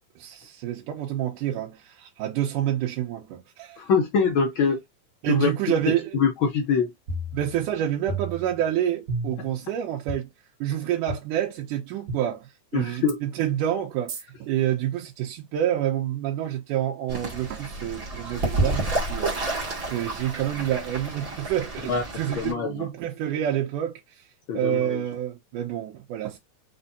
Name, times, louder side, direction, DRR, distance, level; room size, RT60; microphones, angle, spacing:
voice 1, 0.2-3.8 5.2-6.2 7.3-10.3 10.6-24.2 24.5-26.4, right 11 dB, 90° right, 2.5 m, -28 dB
voice 2, 3.8-4.8 5.3-5.5 6.1-6.9 12.7-13.2 21.9-22.0 22.3-22.9 24.5-25.0, left 5 dB, 85° left, 1.1 m, -24 dB
sound 1, 7.1-7.8 8.1-8.7 9.1-9.6 10.1-10.2 11.1-11.2 12.1-12.2 13.1-13.2 14.1-14.2, right 2 dB, 65° right, 2.8 m, -32 dB
Fowl / Bird, 17.1-22.5, right 2 dB, 35° right, 1.8 m, -30 dB
5.6 x 3.5 x 2.7 m
omnidirectional pair, 3.6 m